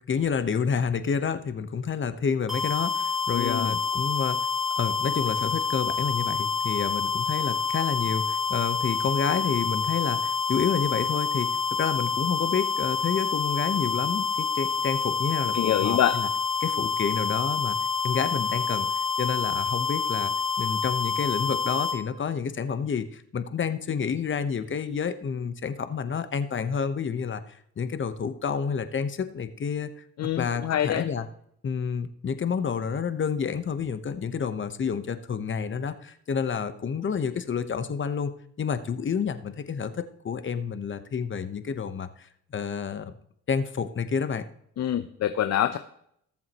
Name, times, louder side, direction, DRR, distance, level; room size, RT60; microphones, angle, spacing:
voice 1, 0.0-4.4 4.8-11.5 11.8-16.3 16.6-17.8 18.0-18.9 19.2-20.3 20.6-27.4 27.8-29.9 30.4-31.3 31.6-38.3 38.6-42.3 42.5-43.1 43.5-44.4, left 6 dB, 40° left, 11 dB, 1.0 m, -29 dB
sound 1, 2.5-22.0, left 5 dB, ahead, 4.1 m, -27 dB
voice 2, 3.3-3.8 15.5-16.2 30.2-31.1 44.8-45.8, left 11 dB, 60° left, 10 dB, 0.8 m, -25 dB
18.5 x 7.3 x 3.0 m, 0.71 s
cardioid pair, 90°, 30 cm